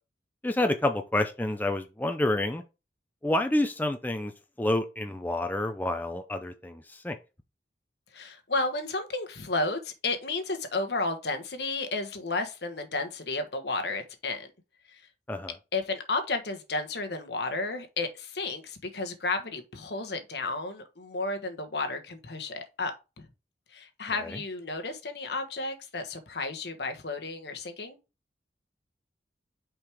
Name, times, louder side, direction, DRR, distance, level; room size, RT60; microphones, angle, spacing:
voice 1, 0.4-2.6 3.2-4.3 4.6-7.2 15.3-15.5 24.2-24.4, left 1 dB, 10° left, 0.5 m, -28 dB
voice 2, 8.1-14.5 14.9-15.0 15.7-23.3 23.7-28.0, left 3 dB, 65° left, 1.2 m, -32 dB
6.1 x 4.9 x 3.5 m
head